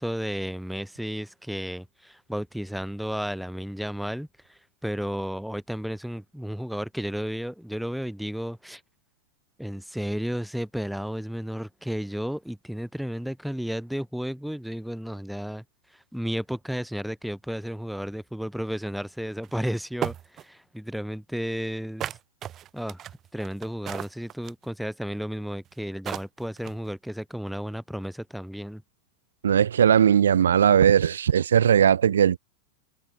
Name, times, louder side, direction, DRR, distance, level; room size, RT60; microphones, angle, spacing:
voice 1, 0.0-8.8 9.6-15.6 15.9-22.2 22.7-23.1 23.3-28.8, equal, ahead, 6.3 m, -33 dB
sound 1, 19.4-19.5 20.0-20.4 22.0-24.7 25.7-25.8 26.1-26.9, right 11 dB, 30° right, 4.5 m, -34 dB
voice 2, 29.4-32.4, right 8 dB, 65° right, 1.1 m, -19 dB
figure-of-eight pair, 90°, 0 cm